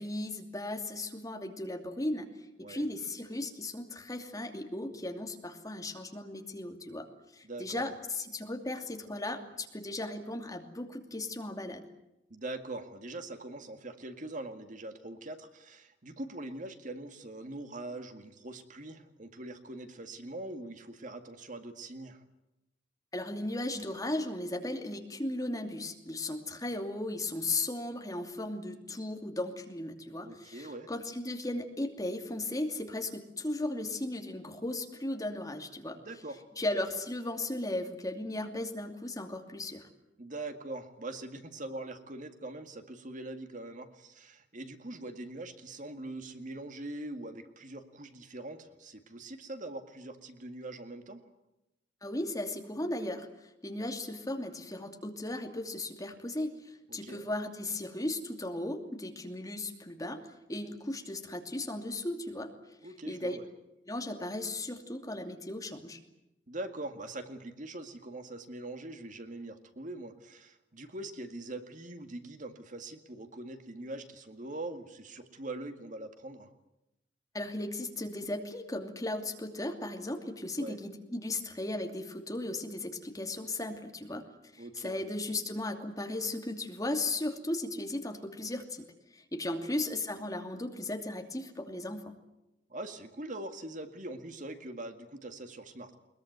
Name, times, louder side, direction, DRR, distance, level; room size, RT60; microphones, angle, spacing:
voice 1, 0.0-2.3 2.6-7.1 7.3-11.9 23.1-36.0 36.6-39.9 52.0-53.3 53.6-60.2 60.5-62.5 63.1-63.4 63.9-66.0 77.3-84.2 84.5-88.8 89.1-92.1, left 2 dB, 20° left, 4 dB, 2.7 m, -36 dB
voice 2, 7.4-7.9 12.3-22.2 30.2-30.9 35.9-36.4 40.2-51.2 56.9-57.3 62.8-63.5 66.5-76.5 80.6-80.8 84.6-85.0 89.5-89.8 92.7-95.9, right 2 dB, 45° right, 7 dB, 2.0 m, -43 dB
22.0 x 21.5 x 9.4 m, 0.88 s
head